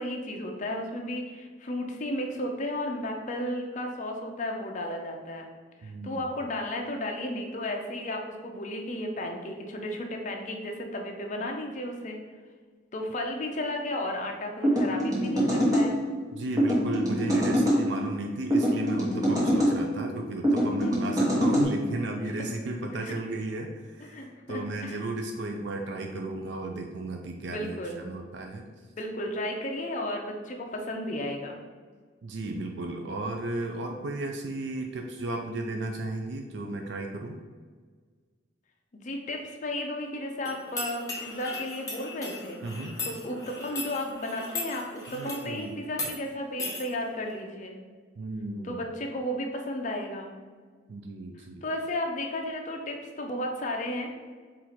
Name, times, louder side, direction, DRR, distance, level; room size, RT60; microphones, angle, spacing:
voice 1, 0.0-5.5 5.8-12.2 12.9-16.0 20.8-20.9 22.2-22.3 22.9-23.2 24.0-25.0 27.5-28.1 29.0-31.6 38.9-42.6 43.0-47.8 48.6-50.3 51.4-54.1, left 1 dB, 40° left, 2 dB, 0.6 m, -34 dB
voice 2, 5.8-6.2 16.3-27.8 28.0-28.7 32.2-37.4 42.6-43.0 45.1-45.7 48.2-48.8 50.9-51.6, right 2 dB, 65° right, 3 dB, 0.4 m, -34 dB
sound 1, 14.6-15.9 16.6-17.8 18.5-19.7 20.4-21.7, equal, 20° right, 1.1 m, -24 dB
sound 2, 40.4-45.5 45.9-46.1 46.6-46.8, left 2 dB, 15° left, 0.8 m, -37 dB
4.4 x 2.5 x 4.1 m, 1.5 s
head